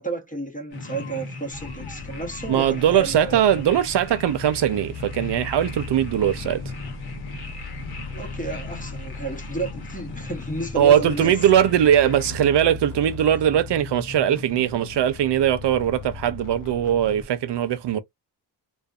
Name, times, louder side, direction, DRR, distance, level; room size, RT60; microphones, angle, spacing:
voice 1, 0.0-3.6 8.1-11.3, right 3 dB, 20° left, 0.9 m, -32 dB
sound 1, 0.7-12.3, left 2 dB, 70° left, 1.1 m, -39 dB
sound 2, 1.5-17.3, left 4 dB, 50° left, 0.6 m, -38 dB
voice 2, 2.5-6.6 10.7-18.0, right 10 dB, 85° right, 0.6 m, -20 dB
2.6 x 2.2 x 2.3 m
wide cardioid pair, 100°, 41 cm